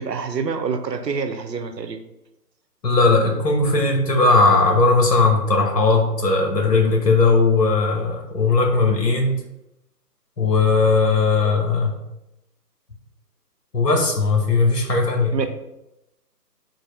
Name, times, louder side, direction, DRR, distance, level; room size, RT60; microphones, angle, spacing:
voice 1, 0.0-2.0 15.3-15.5, right 5 dB, 90° right, 7 dB, 0.7 m, -26 dB
voice 2, 2.8-9.4 10.4-11.9 13.7-15.5, left 3 dB, 75° left, 2 dB, 1.3 m, -18 dB
3.9 x 2.6 x 4.5 m, 0.89 s
figure-of-eight pair, 160°, 49 cm